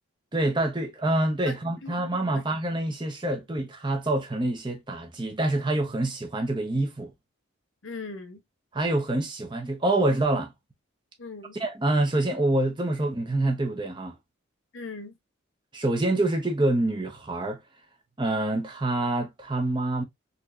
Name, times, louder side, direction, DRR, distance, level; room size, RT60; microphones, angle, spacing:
voice 1, 0.3-7.1 8.7-10.5 11.6-14.1 15.7-17.6 18.2-20.0, right 2 dB, 20° right, 0.9 m, -26 dB
voice 2, 1.8-2.4 7.8-8.4 11.2-11.6 14.7-15.2, left 3 dB, 70° left, 1.0 m, -39 dB
4.2 x 3.1 x 2.6 m
head